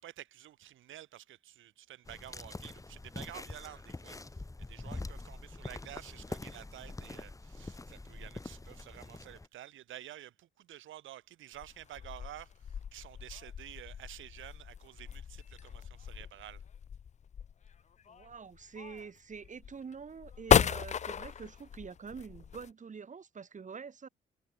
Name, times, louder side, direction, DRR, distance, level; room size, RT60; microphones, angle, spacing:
voice 1, 0.0-4.2 4.7-12.5 12.9-16.6, right 13 dB, 80° right, 5.6 m, -50 dB
sound 1, 2.1-9.5, left 2 dB, 15° left, 2.7 m, -44 dB
sound 2, 11.5-22.7, left 7 dB, 35° left, 0.5 m, -34 dB
voice 2, 18.1-24.1, right 6 dB, 40° right, 4.4 m, -46 dB
cardioid pair, 90°, 20 cm